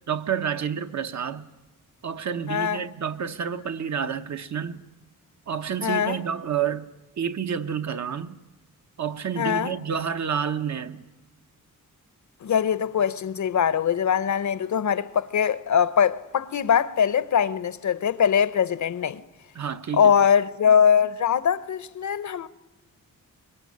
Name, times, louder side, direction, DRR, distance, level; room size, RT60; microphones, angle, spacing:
voice 1, 0.1-1.5 2.0-4.8 5.5-6.9 7.2-8.4 9.0-11.0 19.5-20.1, right 7 dB, 55° right, 1.0 m, -29 dB
voice 2, 2.5-2.8 5.8-6.2 9.4-9.7 12.4-19.2 19.9-22.5, left 7 dB, 60° left, 0.8 m, -22 dB
24.5 x 21.0 x 9.6 m
wide cardioid pair, 165°, 33 cm